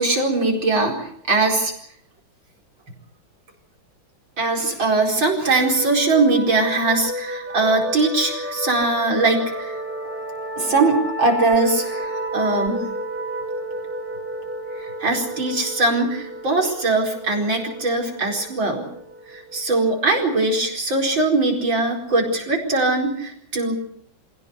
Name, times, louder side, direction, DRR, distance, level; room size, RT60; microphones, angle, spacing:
voice 1, 0.0-1.7 4.4-9.8 10.6-12.8 14.8-18.8 19.3-23.7, right 3 dB, 70° right, 1 dB, 5.3 m, -21 dB
sound 1, 5.6-20.9, right 1 dB, 5° right, 3.1 m, -32 dB
26.0 x 17.5 x 8.2 m, 0.67 s
omnidirectional pair, 2.2 m